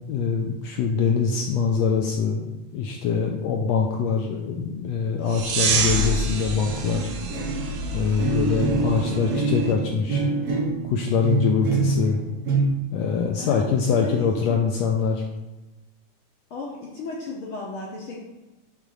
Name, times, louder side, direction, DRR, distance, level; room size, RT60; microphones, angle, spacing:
voice 1, 0.1-7.1 7.9-10.2 10.8-12.2 12.9-15.2, left 6 dB, 75° left, 2 dB, 1.7 m, -24 dB
sound 1, 5.3-9.7, right 2 dB, 85° right, 2.6 m, -27 dB
sound 2, 6.6-6.9 7.3-12.6, right 3 dB, 70° right, 0.9 m, -26 dB
voice 2, 9.1-9.4 13.4-14.6 16.5-18.2, left 3 dB, 60° left, -2 dB, 1.4 m, -35 dB
8.3 x 3.8 x 6.2 m, 1.1 s
omnidirectional pair, 3.5 m